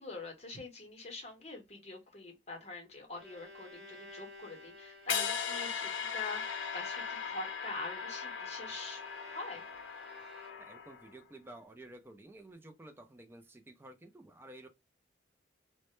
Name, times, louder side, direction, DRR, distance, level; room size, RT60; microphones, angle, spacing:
voice 1, 0.0-9.0 9.3-9.6, left 3 dB, 35° left, 0.8 m, -45 dB
Bowed string instrument, 2.9-10.9, left 1 dB, 75° right, 0.8 m, -53 dB
sound 1, 5.1-11.2, left 6 dB, 80° left, 0.5 m, -38 dB
voice 2, 10.6-14.7, right 1 dB, 10° right, 0.3 m, -52 dB
2.1 x 2.0 x 2.9 m
head